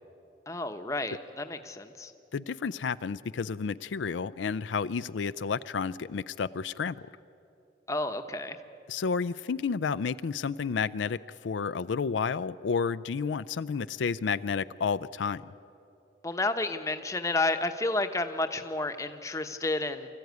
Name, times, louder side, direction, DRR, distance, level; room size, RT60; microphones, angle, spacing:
voice 1, 0.5-2.1 7.9-8.6 16.2-20.1, left 2 dB, 15° left, 7 dB, 0.9 m, -31 dB
voice 2, 2.3-7.1 8.9-15.5, left 5 dB, 85° left, 15 dB, 0.4 m, -31 dB
25.5 x 14.5 x 9.4 m, 2.8 s
head